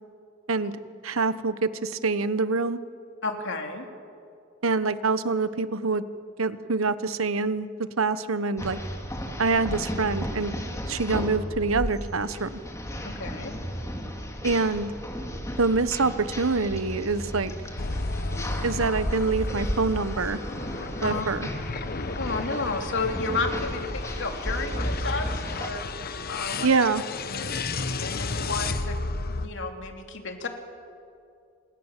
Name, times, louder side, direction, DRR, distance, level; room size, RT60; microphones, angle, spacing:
voice 1, 1.0-2.8 4.6-6.0 6.4-8.8 9.4-10.5 10.9-12.6 14.4-14.9 15.6-17.5 18.6-20.4 21.0-21.5 26.6-27.0, right 4 dB, 85° right, 13 dB, 1.2 m, -25 dB
voice 2, 3.2-3.9 13.0-13.5 21.0-21.2 22.2-26.7 27.8-29.0 29.3-30.5, left 3 dB, 65° left, 4 dB, 3.2 m, -32 dB
sound 1, 8.6-25.7, equal, 15° left, 3.0 m, -34 dB
sound 2, 17.8-29.5, left 3 dB, 50° left, 1.1 m, -33 dB
29.0 x 26.5 x 7.5 m, 2.5 s
head